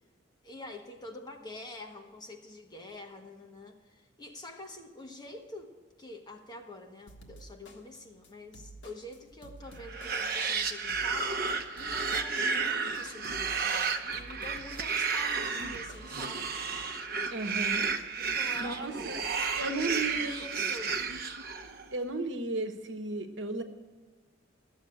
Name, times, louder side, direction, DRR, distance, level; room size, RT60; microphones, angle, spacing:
voice 1, 0.4-16.6 18.2-21.2, left 2 dB, 20° left, 3 dB, 1.2 m, -46 dB
sound 1, 7.1-16.2, right 1 dB, 70° left, 1.5 m, -51 dB
sound 2, 9.8-21.8, right 5 dB, 50° right, 0.9 m, -32 dB
voice 2, 17.3-17.9 18.6-19.2 19.6-20.4 21.9-23.6, right 2 dB, 70° right, 6 dB, 1.1 m, -34 dB
12.5 x 7.4 x 8.7 m, 1.4 s
head